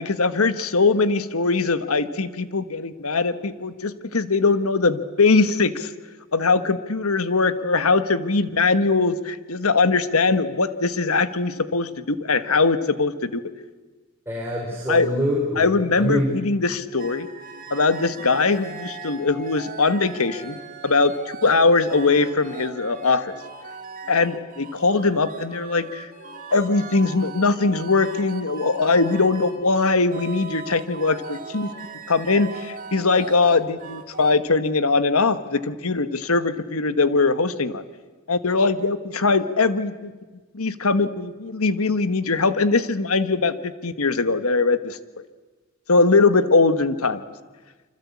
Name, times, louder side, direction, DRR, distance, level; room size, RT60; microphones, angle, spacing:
voice 1, 0.0-5.9 6.3-13.4 14.9-15.1 15.6-17.3 17.7-20.6 20.8-21.2 21.4-23.3 24.1-26.1 26.5-31.7 32.1-37.8 38.3-40.1 40.5-45.0 45.9-47.2, left 3 dB, 75° left, 11 dB, 1.4 m, -21 dB
voice 2, 14.3-16.3, equal, 10° right, -3 dB, 4.5 m, -25 dB
sound 1, 17.0-34.3, right 4 dB, 40° right, 2.9 m, -39 dB
26.5 x 25.5 x 8.5 m, 1.3 s
head